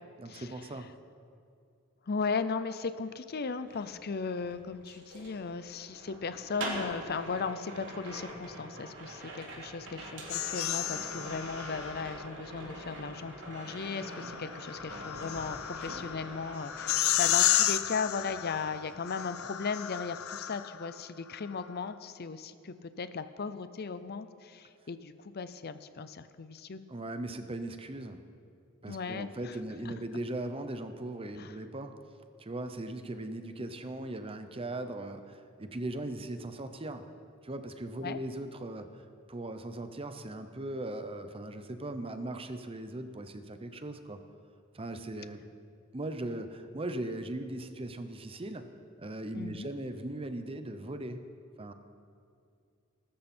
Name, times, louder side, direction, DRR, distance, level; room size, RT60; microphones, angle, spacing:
voice 1, 0.2-0.9 26.9-28.2 28.8-31.9 32.4-37.0 37.4-39.0 39.3-44.2 44.7-45.4 45.9-48.7 49.0-51.3 51.6-51.7, right 1 dB, 25° right, 8 dB, 0.8 m, -39 dB
voice 2, 2.1-26.8 28.9-29.6 29.9-30.0 31.4-31.5 38.0-38.2 49.3-49.7, left 5 dB, 50° left, 12 dB, 0.6 m, -37 dB
sound 1, 3.6-17.7 18.0-19.5 19.8-20.1, right 1 dB, 60° right, 3.1 m, -44 dB
sound 2, 10.3-12.3 13.7-20.9, left 12 dB, 90° left, 0.6 m, -32 dB
19.5 x 13.0 x 4.4 m, 2.4 s
head